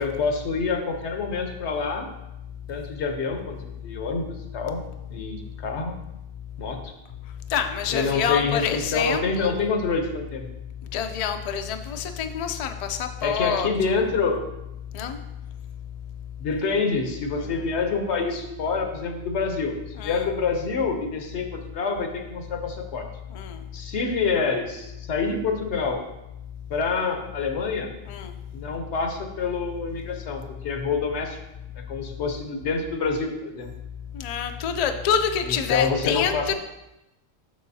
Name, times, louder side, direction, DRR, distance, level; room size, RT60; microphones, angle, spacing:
voice 1, 0.0-2.1 2.7-4.8 5.1-6.0 6.6-6.9 7.9-10.5 13.2-14.4 16.4-19.8 20.0-23.0 23.7-26.0 26.7-27.9 28.5-31.4 31.8-33.7 35.4-36.5, left 4 dB, 80° left, 5 dB, 1.1 m, -27 dB
voice 2, 7.5-9.6 10.9-13.7 14.9-15.2 17.4-17.6 20.0-20.3 23.3-23.6 28.1-28.3 34.1-36.5, left 7 dB, 60° left, 7 dB, 0.4 m, -27 dB
6.6 x 6.3 x 2.7 m, 0.93 s
omnidirectional pair, 1.1 m